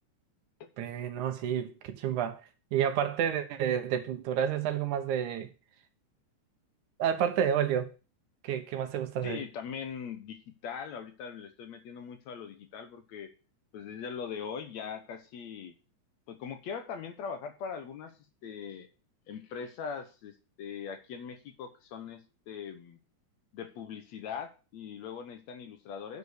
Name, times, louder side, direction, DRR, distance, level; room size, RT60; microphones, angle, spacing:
voice 1, 0.8-5.5 7.0-7.9 8.4-9.4, right 9 dB, 75° right, 2.4 m, -30 dB
voice 2, 9.2-13.3 13.7-15.7 16.3-18.1 18.4-18.9 19.3-23.0 23.5-26.2, left 6 dB, 65° left, 2.1 m, -41 dB
9.7 x 5.2 x 6.5 m
omnidirectional pair, 3.6 m